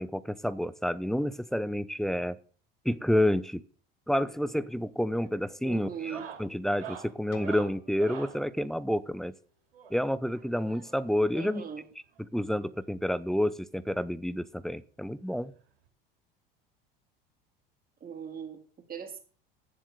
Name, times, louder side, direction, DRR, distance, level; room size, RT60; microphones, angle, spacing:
voice 1, 0.0-2.4 2.8-3.6 4.1-9.3 9.9-11.6 12.3-15.5, left 1 dB, ahead, 18 dB, 0.7 m, -29 dB
sound 1, 4.4-4.7 5.0-5.3 5.9-8.4 9.7-11.1 12.2-12.3 12.5-12.6 13.0-13.1 14.4-14.5 15.9-16.0, right 8 dB, 80° right, 2.7 m, -45 dB
voice 2, 5.6-6.3 11.3-11.8 18.0-18.6 18.9-19.2, right 7 dB, 30° right, 3 dB, 3.5 m, -39 dB
sound 2, 7.3-10.2, left 10 dB, 55° left, 2.1 m, -54 dB
10.0 x 7.4 x 6.6 m, 0.42 s
hypercardioid pair, 75°, 29 cm